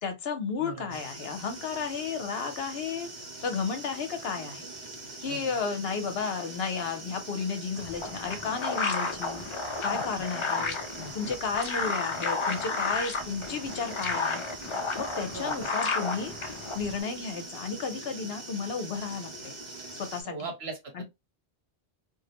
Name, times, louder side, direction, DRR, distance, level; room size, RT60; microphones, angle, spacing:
voice 1, 0.0-3.1 3.4-4.6 5.2-9.4 9.8-10.8 11.1-14.4 15.0-16.3 16.7-19.5 19.9-20.3 20.9-21.0, left 5 dB, 65° left, 0.9 m, -33 dB
voice 2, 0.6-1.0 5.2-5.6 9.9-10.0 10.9-11.1 15.3-15.7 20.2-21.0, right 2 dB, 70° right, 1.1 m, -40 dB
sound 1, 0.9-20.2, right 2 dB, 45° right, 0.9 m, -43 dB
sound 2, 7.8-17.0, left 3 dB, 50° left, 0.3 m, -32 dB
2.4 x 2.0 x 2.8 m
omnidirectional pair, 1.1 m